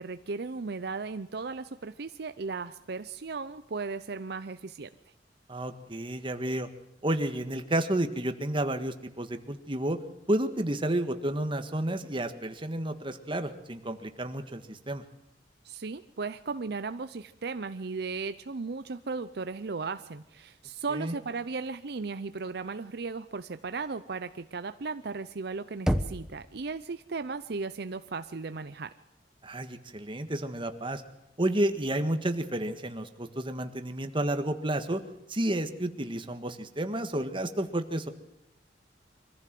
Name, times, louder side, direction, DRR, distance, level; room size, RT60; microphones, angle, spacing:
voice 1, 0.0-4.9 15.6-28.9, right 4 dB, 65° right, 11 dB, 0.6 m, -36 dB
voice 2, 5.5-6.7 7.0-10.0 10.3-15.0 20.9-21.1 29.4-31.0 31.4-35.0 35.3-38.1, right 1 dB, 30° right, 7 dB, 1.6 m, -31 dB
Knock, 25.9-26.8, equal, 5° right, 0.9 m, -29 dB
24.0 x 15.0 x 7.7 m, 0.86 s
head